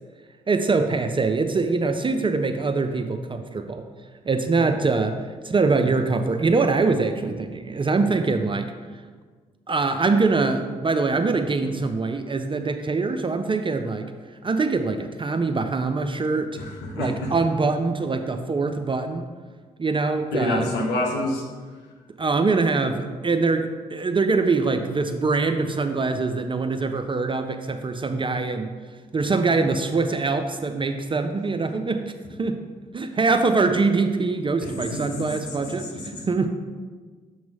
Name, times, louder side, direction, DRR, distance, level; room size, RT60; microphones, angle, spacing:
voice 1, 0.5-3.8 4.3-8.7 9.7-14.1 14.4-16.5 17.0-19.3 19.8-20.7 22.2-28.7 29.1-32.1 32.4-32.6 32.9-36.5, right 3 dB, 30° right, 7 dB, 0.5 m, -23 dB
voice 2, 16.6-17.3 20.3-21.5 34.6-35.2 35.8-36.0, left 1 dB, 75° left, 0 dB, 1.1 m, -27 dB
7.0 x 3.1 x 5.3 m, 1.5 s
hypercardioid pair, 45°, 18 cm